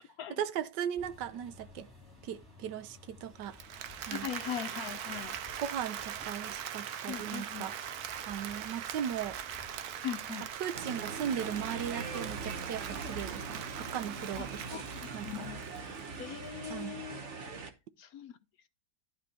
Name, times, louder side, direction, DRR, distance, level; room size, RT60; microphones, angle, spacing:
voice 1, 0.4-1.9 2.2-3.6 4.1-4.3 5.6-7.7 8.3-9.4 10.6-14.6 15.1-15.3 16.7-16.9, right 9 dB, 85° right, 1.4 m, -37 dB
sound 1, 1.0-16.6, left 2 dB, 10° right, 4.5 m, -56 dB
Applause, 3.4-16.4, right 9 dB, 70° right, 1.1 m, -41 dB
voice 2, 4.0-5.4 7.1-7.7 10.0-10.5 14.3-14.8 15.2-15.7 16.2-17.2 18.0-18.4, left 9 dB, 65° left, 1.0 m, -40 dB
sound 2, 10.7-17.7, right 4 dB, 45° right, 1.4 m, -42 dB
12.0 x 4.5 x 4.2 m
omnidirectional pair, 1.9 m